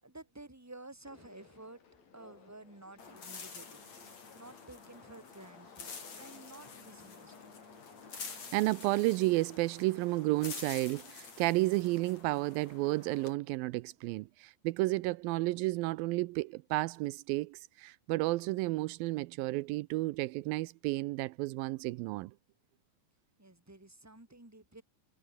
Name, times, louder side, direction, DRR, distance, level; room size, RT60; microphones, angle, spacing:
voice 1, 0.0-1.8 2.1-3.8 4.3-5.9 6.2-7.5 23.4-24.8, right 2 dB, 5° right, 3.5 m, -52 dB
Conversation, 1.0-11.1, left 6 dB, 80° left, 5.7 m, -60 dB
sound 1, 3.0-13.3, left 5 dB, 50° left, 5.7 m, -48 dB
voice 2, 8.3-22.3, right 20 dB, 85° right, 2.4 m, -32 dB
omnidirectional pair, 4.1 m